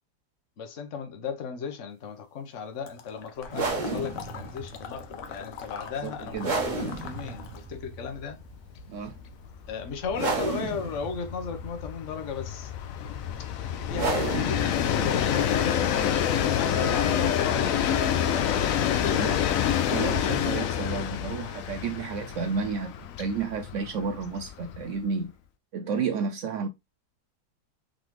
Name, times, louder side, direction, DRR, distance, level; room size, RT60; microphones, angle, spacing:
voice 1, 0.6-8.4 9.7-12.7 13.9-17.8 18.0-19.6, left 6 dB, 50° left, 1.2 m, -36 dB
Water / Liquid, 2.9-7.7, left 7 dB, 90° left, 1.5 m, -42 dB
sound 1, 3.4-18.7, right 3 dB, 35° right, 0.9 m, -35 dB
voice 2, 6.0-6.5 8.9-9.2 16.6-16.9 19.2-19.3 19.9-25.3 25.7-26.7, right 5 dB, 75° right, 0.7 m, -31 dB
Train, 6.8-7.0 7.3-7.4 7.7-25.1, left 9 dB, 70° left, 0.9 m, -28 dB
3.9 x 3.7 x 3.1 m
omnidirectional pair, 1.8 m